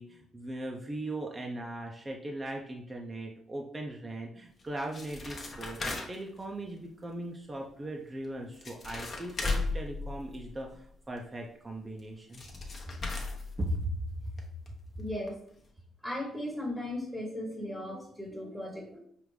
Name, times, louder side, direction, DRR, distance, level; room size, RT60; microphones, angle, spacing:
voice 1, 0.0-5.8 6.1-12.4 13.6-14.0, right 1 dB, 25° right, 0 dB, 0.5 m, -38 dB
sound 1, 4.6-6.4 8.2-8.3 8.5-10.8 12.0-12.1 12.3-14.0 14.4-14.5 14.7-14.8 15.3-15.4 15.6-15.7, left 3 dB, 40° left, 0.9 m, -36 dB
voice 2, 15.0-15.4 16.0-19.0, left 1 dB, ahead, -1 dB, 1.1 m, -37 dB
5.0 x 2.5 x 3.2 m, 0.67 s
cardioid pair, 90°, 0 cm